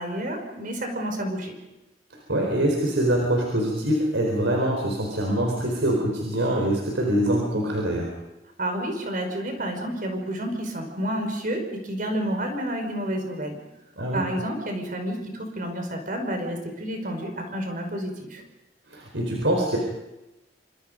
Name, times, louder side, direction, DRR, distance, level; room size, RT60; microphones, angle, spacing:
voice 1, 0.0-1.5 8.6-13.6 14.1-18.4, right 1 dB, 50° right, 4 dB, 5.3 m, -30 dB
voice 2, 2.3-8.1 14.0-14.2 18.9-19.8, right 1 dB, 90° right, 0 dB, 4.5 m, -24 dB
28.0 x 25.5 x 5.3 m, 0.97 s
head